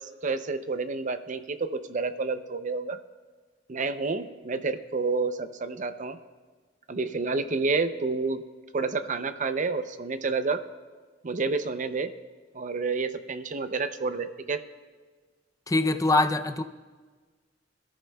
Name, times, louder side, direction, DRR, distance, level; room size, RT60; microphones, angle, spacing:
voice 1, 0.0-3.0 3.7-6.2 6.9-8.4 8.7-10.6 11.2-12.1 12.5-14.6, right 4 dB, 45° right, 10 dB, 0.6 m, -29 dB
voice 2, 15.7-16.6, left 2 dB, 20° left, 8 dB, 0.5 m, -23 dB
26.5 x 13.5 x 2.3 m, 1.4 s
head